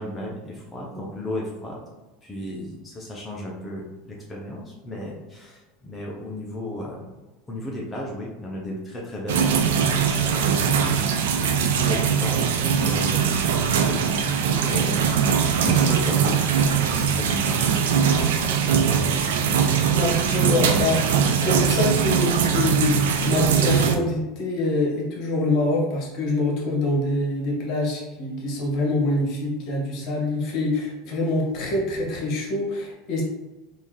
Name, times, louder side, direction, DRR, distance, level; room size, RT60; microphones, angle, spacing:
voice 1, 0.0-1.8 2.2-7.2 7.5-9.5 9.8-10.9 11.2-13.4 13.8-15.2 15.6-17.6 18.3-18.8 19.1-19.2 20.4-20.8, left 1 dB, 15° left, -4 dB, 0.8 m, -34 dB
sound 1, 9.3-24.0, right 7 dB, 70° right, 0.4 m, -21 dB
voice 2, 19.9-33.2, left 2 dB, 50° left, -2 dB, 1.2 m, -25 dB
3.5 x 2.7 x 3.2 m, 1.1 s
figure-of-eight pair, 80°, 0 cm